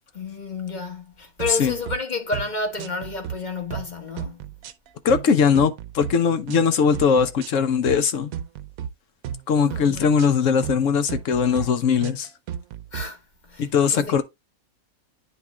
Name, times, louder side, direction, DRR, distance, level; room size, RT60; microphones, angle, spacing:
voice 1, 0.1-4.5 9.6-10.1 12.9-14.2, left 3 dB, 30° left, 1.2 m, -31 dB
sound 1, 1.4-2.0 2.3-2.5 2.8-3.4 3.7-3.9 4.2-5.3 5.6-6.1 6.5-6.7 6.9-7.5 7.9-8.0 8.3-8.9 9.2-9.4 9.7-10.3 10.6-10.8 11.1-11.7 12.0-13.1, right 9 dB, 75° right, 1.1 m, -33 dB
voice 2, 5.0-8.3 9.5-12.3 13.6-14.2, left 6 dB, 60° left, 1.0 m, -20 dB
9.5 x 3.6 x 3.0 m
omnidirectional pair, 1.6 m